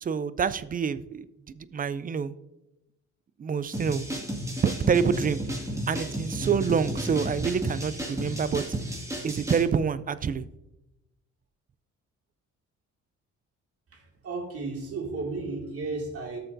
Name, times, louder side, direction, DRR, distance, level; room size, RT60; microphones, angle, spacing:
voice 1, 0.0-1.3 1.5-2.3 3.4-4.1 4.6-5.4 5.9-8.8 9.2-10.5, right 6 dB, 30° right, 15 dB, 0.4 m, -27 dB
sound 1, 3.7-9.7, equal, 10° right, 1.9 m, -33 dB
voice 2, 13.9-16.4, right 3 dB, 50° right, 1 dB, 2.3 m, -34 dB
12.5 x 6.8 x 2.6 m, 0.93 s
cardioid pair, 90°, 30 cm